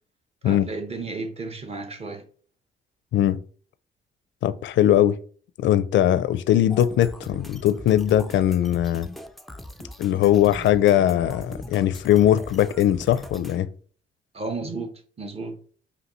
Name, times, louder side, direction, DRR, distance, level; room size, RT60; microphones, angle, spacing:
voice 1, 0.4-2.2 14.3-15.6, right 3 dB, 30° right, 1.0 m, -33 dB
voice 2, 4.4-5.2 5.6-9.1 10.0-13.7, left 11 dB, 70° left, 0.4 m, -20 dB
sound 1, 6.7-13.6, equal, ahead, 0.4 m, -41 dB
5.1 x 2.6 x 3.1 m
cardioid pair, 90°, 20 cm